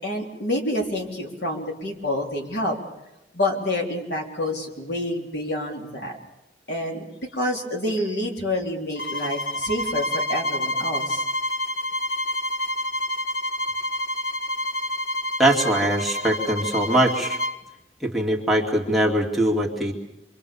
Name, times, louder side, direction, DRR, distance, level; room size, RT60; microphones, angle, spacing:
voice 1, 0.0-2.8 3.3-6.2 6.7-7.0 7.3-11.3, left 1 dB, 70° left, 0 dB, 4.0 m, -28 dB
sound 1, 9.0-17.6, left 1 dB, 55° left, 1.4 m, -28 dB
voice 2, 15.4-17.4 18.0-19.9, right 1 dB, ahead, -3 dB, 2.4 m, -22 dB
27.5 x 24.0 x 7.1 m, 0.91 s
head